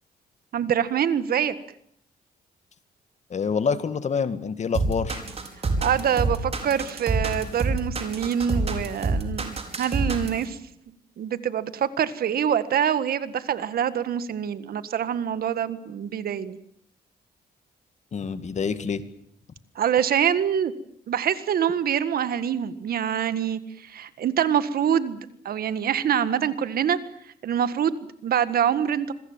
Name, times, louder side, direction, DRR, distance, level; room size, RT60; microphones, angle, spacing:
voice 1, 0.5-1.5 5.8-10.6 11.2-16.6 19.8-20.7 21.1-25.2 25.5-27.0 27.4-29.1, right 9 dB, 70° right, 13 dB, 1.7 m, -25 dB
voice 2, 3.3-5.2 18.1-19.0, left 6 dB, 45° left, 12 dB, 2.1 m, -27 dB
sound 1, 4.7-10.4, right 3 dB, 40° right, 5.3 m, -26 dB
26.5 x 22.5 x 7.5 m, 0.68 s
cardioid pair, 115°, 16 cm